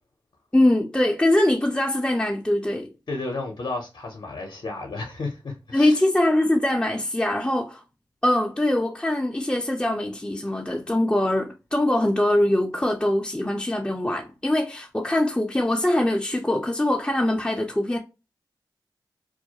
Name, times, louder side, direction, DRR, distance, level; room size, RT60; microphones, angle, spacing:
voice 1, 0.5-2.9 5.7-7.8 8.2-18.0, left 1 dB, 10° left, 0.4 m, -22 dB
voice 2, 3.1-6.0, left 3 dB, 60° left, 0.6 m, -32 dB
2.3 x 2.1 x 2.7 m
cardioid pair, 40°, 8 cm